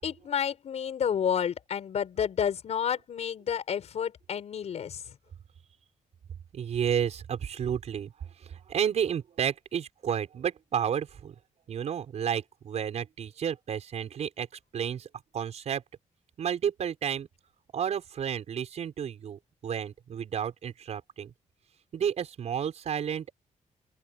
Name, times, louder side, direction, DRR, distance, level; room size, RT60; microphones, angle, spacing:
voice 1, 0.0-5.1, left 8 dB, 55° left, 5.0 m, -30 dB
voice 2, 6.5-8.1 8.4-11.3 11.7-14.5 14.7-15.1 15.3-15.8 16.4-17.3 17.7-21.3 21.9-23.3, right 8 dB, 55° right, 6.0 m, -31 dB
open air
wide cardioid pair, 160°, 13 cm